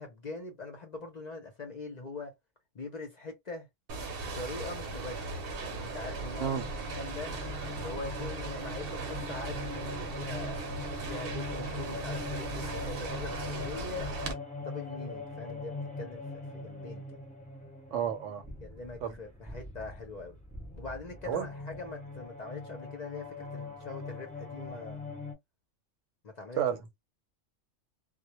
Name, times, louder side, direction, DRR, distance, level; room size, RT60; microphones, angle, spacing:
voice 1, 0.0-2.4 2.7-3.7 4.2-5.3 5.6-6.5 6.9-7.3 7.7-10.6 11.1-14.1 14.6-17.0 18.6-20.4 20.8-25.0 26.2-26.6, left 3 dB, 45° left, 0.6 m, -42 dB
sound 1, 3.9-14.3, right 3 dB, 55° right, 0.8 m, -38 dB
sound 2, 6.1-25.3, left 3 dB, 10° left, 0.7 m, -42 dB
voice 2, 17.9-18.4 19.0-19.2 21.3-21.5 26.6-26.8, right 9 dB, 80° right, 1.0 m, -31 dB
2.1 x 2.1 x 2.9 m
omnidirectional pair, 1.3 m